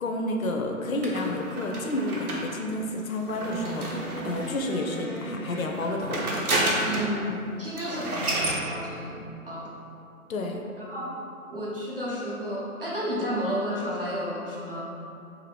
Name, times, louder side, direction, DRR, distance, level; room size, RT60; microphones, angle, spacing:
voice 1, 0.0-6.2 7.9-8.1 10.3-10.6, left 1 dB, 70° left, 2 dB, 0.5 m, -30 dB
sound 1, 1.0-4.7 5.6-7.2 7.5-7.6 7.8-8.6, right 1 dB, 85° right, 0.8 m, -30 dB
sound 2, 3.3-6.3 8.3-9.0, equal, 10° right, 0.8 m, -38 dB
voice 2, 6.8-9.7 10.8-11.1 11.5-14.8, equal, 40° right, -6 dB, 0.5 m, -32 dB
2.6 x 2.5 x 3.2 m, 2.6 s
figure-of-eight pair, 160°, 43 cm